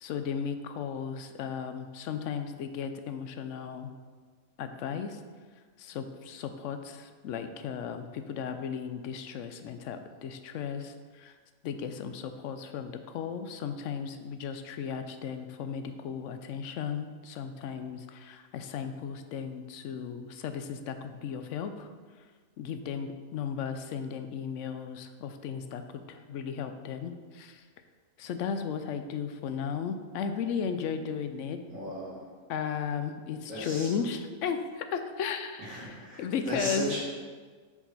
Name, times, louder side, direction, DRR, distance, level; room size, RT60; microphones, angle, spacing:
voice 1, 0.0-3.9 4.6-5.2 5.8-11.3 11.6-21.9 22.6-27.6 28.2-31.6 32.5-36.9, left 7 dB, 70° left, 8 dB, 0.8 m, -35 dB
voice 2, 31.7-32.2 33.5-33.9 35.6-37.0, right 1 dB, 70° right, -7 dB, 2.6 m, -36 dB
7.2 x 4.9 x 4.1 m, 1.5 s
omnidirectional pair, 1.5 m